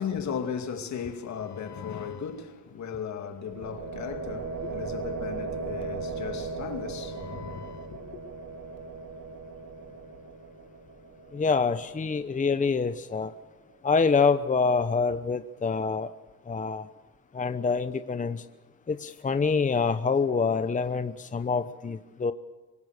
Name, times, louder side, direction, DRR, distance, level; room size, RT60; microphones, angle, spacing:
voice 1, 0.0-8.1, left 7 dB, 65° left, 2.6 m, -36 dB
sound 1, 3.4-13.3, right 3 dB, 55° right, 2.2 m, -38 dB
voice 2, 11.3-13.3 13.8-16.1 16.5-16.9 17.3-18.4 18.9-22.3, left 5 dB, 25° left, 0.9 m, -26 dB
25.5 x 20.0 x 6.7 m
cardioid pair, 90°, 30 cm